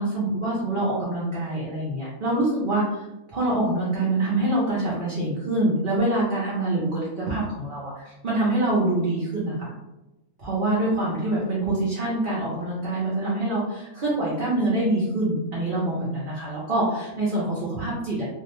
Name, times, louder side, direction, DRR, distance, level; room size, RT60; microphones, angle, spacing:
voice 1, 0.0-3.0 3.3-9.7 10.4-18.2, right 2 dB, 55° right, -7 dB, 0.6 m, -25 dB
2.6 x 2.0 x 3.0 m, 0.99 s
omnidirectional pair, 1.6 m